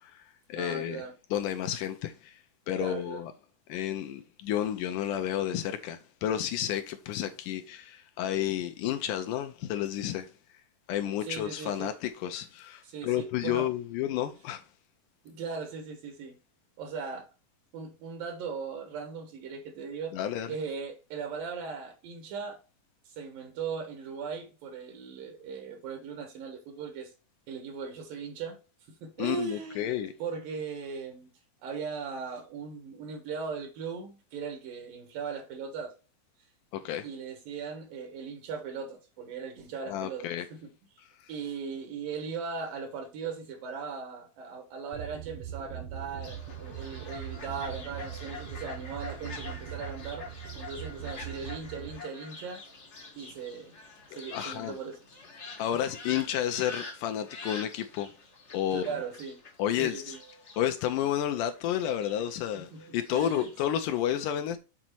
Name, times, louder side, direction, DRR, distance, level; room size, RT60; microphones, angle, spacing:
voice 1, 0.0-1.0 1.3-2.4 2.7-3.3 3.7-10.3 10.9-14.6 20.1-20.5 29.2-30.1 36.7-37.1 39.9-40.5 54.1-54.8 55.6-58.1 58.5-58.9 59.6-60.1 60.6-64.6, left 11 dB, 80° left, 2.1 m, -31 dB
voice 2, 0.6-1.1 2.8-3.2 11.2-11.9 12.8-13.7 15.2-16.4 16.8-17.3 17.7-20.1 20.5-22.6 23.0-27.1 27.5-28.6 28.9-31.3 31.6-35.9 37.0-40.6 41.0-41.1 41.3-50.2 50.6-52.6 53.2-53.7 54.1-55.0 58.7-59.4 59.8-60.2 62.7-63.5, right 5 dB, 80° right, 3.0 m, -38 dB
sound 1, 44.9-52.0, right 10 dB, 65° right, 1.8 m, -41 dB
Fowl, 46.2-63.8, left 3 dB, 50° left, 0.8 m, -46 dB
7.5 x 4.0 x 4.4 m
omnidirectional pair, 3.9 m